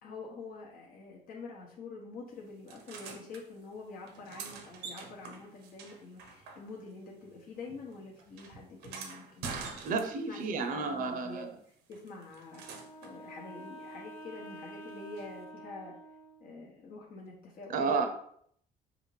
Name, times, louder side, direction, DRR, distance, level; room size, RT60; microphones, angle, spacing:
voice 1, 0.0-9.6 10.3-15.9 16.4-18.1, left 3 dB, 60° left, -2 dB, 0.9 m, -47 dB
sound 1, 2.7-3.4 4.0-7.0 7.3-10.4 11.9-13.2 15.2-15.3, right 5 dB, 90° right, 0.7 m, -46 dB
voice 2, 9.5-11.5 17.7-18.1, right 4 dB, 55° right, 7 dB, 0.6 m, -32 dB
Wind instrument woodwind instrument, 12.4-16.7, right 1 dB, 15° left, 0.9 m, -48 dB
4.9 x 2.5 x 3.2 m, 0.65 s
cardioid pair, 110°, 17 cm